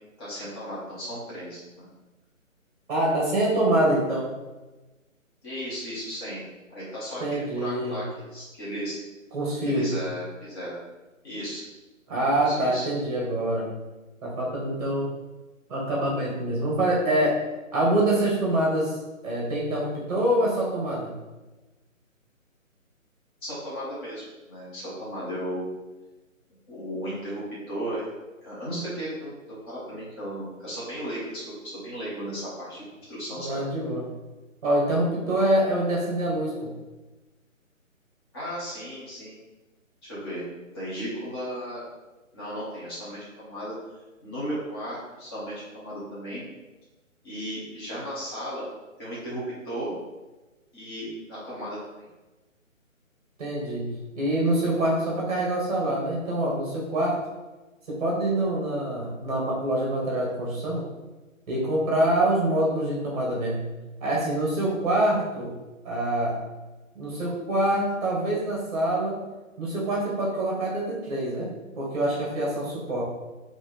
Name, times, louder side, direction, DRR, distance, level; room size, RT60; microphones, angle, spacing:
voice 1, 0.2-1.9 5.4-6.4 6.7-8.0 8.3-9.0 9.6-10.8 11.2-11.6 12.3-12.9 23.4-25.7 26.7-28.1 28.4-33.6 38.3-39.4 40.0-40.5 40.7-41.8 42.3-43.7 44.2-46.4 47.2-48.7 49.0-49.9 50.7-52.0, equal, 20° left, -9 dB, 1.1 m, -35 dB
voice 2, 2.9-4.3 7.2-8.0 9.3-9.9 12.1-13.7 14.2-15.1 15.7-17.4 17.7-21.1 33.4-34.1 34.6-36.7 53.4-57.2 57.9-60.9 61.5-63.7 64.0-65.5 65.8-66.4 66.9-69.2 69.6-71.5 71.7-73.0, right 1 dB, 30° right, -4 dB, 1.4 m, -25 dB
4.0 x 3.0 x 3.8 m, 1.1 s
figure-of-eight pair, 155°, 41 cm